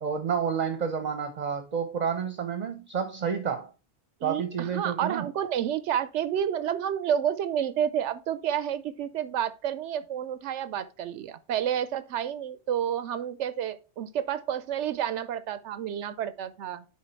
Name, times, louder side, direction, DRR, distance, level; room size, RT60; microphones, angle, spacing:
voice 1, 0.0-3.7 4.2-5.3, right 7 dB, 45° right, 0.8 m, -30 dB
voice 2, 4.2-16.8, right 9 dB, 85° right, 0.9 m, -30 dB
10.5 x 3.4 x 4.4 m
omnidirectional pair, 1.2 m